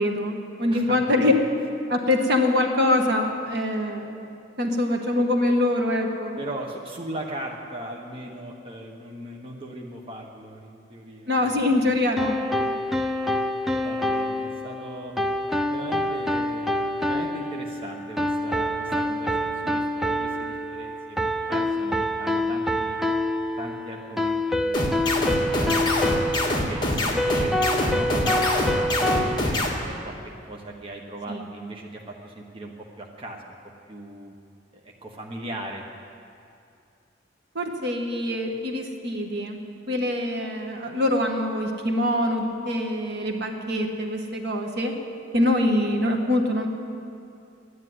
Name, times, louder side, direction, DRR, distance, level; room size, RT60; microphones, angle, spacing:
voice 1, 0.0-1.3 1.9-4.2 4.6-6.3 11.3-12.4 31.3-31.4 37.5-39.6 39.9-45.0 45.3-46.7, left 1 dB, 60° right, 2 dB, 1.5 m, -24 dB
voice 2, 0.7-1.3 6.4-11.7 13.8-15.1 15.7-16.7 17.1-19.3 19.6-21.2 21.4-23.0 23.6-24.9 25.5-26.3 26.6-30.2 30.4-32.7 33.0-33.6 33.9-34.3 34.8-35.8, right 1 dB, 30° right, -1 dB, 1.2 m, -38 dB
sound 1, 12.2-29.4, left 1 dB, ahead, 0.5 m, -26 dB
sound 2, 24.7-29.7, left 1 dB, 25° left, 1.8 m, -24 dB
12.5 x 10.0 x 9.5 m, 2.5 s
head